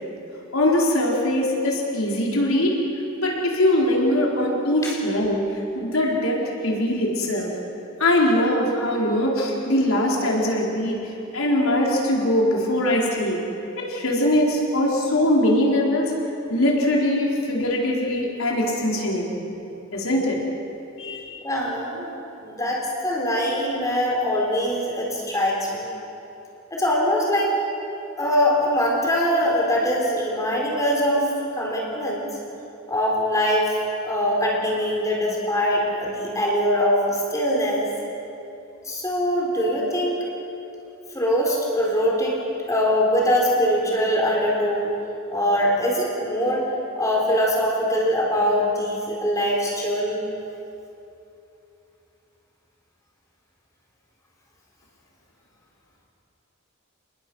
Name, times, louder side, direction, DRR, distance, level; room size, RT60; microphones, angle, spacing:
voice 1, 0.5-2.8 3.2-5.4 5.8-7.5 8.0-11.0 11.3-13.4 13.8-16.1 16.5-19.4 19.9-20.4 21.0-21.3, left 1 dB, 90° left, -2 dB, 4.5 m, -22 dB
voice 2, 21.4-25.9 26.7-27.5 28.2-32.3 32.9-33.8 34.0-37.9 38.8-40.3 41.1-42.4 42.7-44.9 45.3-46.6 47.0-50.3, equal, 15° left, -2 dB, 4.1 m, -22 dB
29.0 x 20.0 x 6.4 m, 2.8 s
head